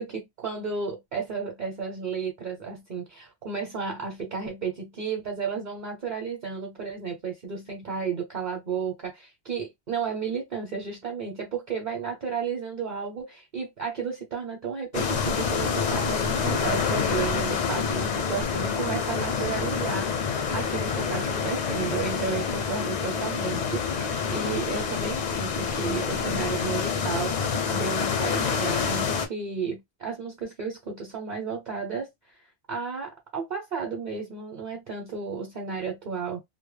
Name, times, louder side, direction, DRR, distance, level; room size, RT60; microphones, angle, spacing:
voice 1, 0.0-32.1 32.7-36.4, right 5 dB, 45° right, 0.8 m, -33 dB
sound 1, 14.9-29.3, left 6 dB, 55° left, 0.5 m, -27 dB
2.1 x 2.0 x 3.2 m
omnidirectional pair, 1.1 m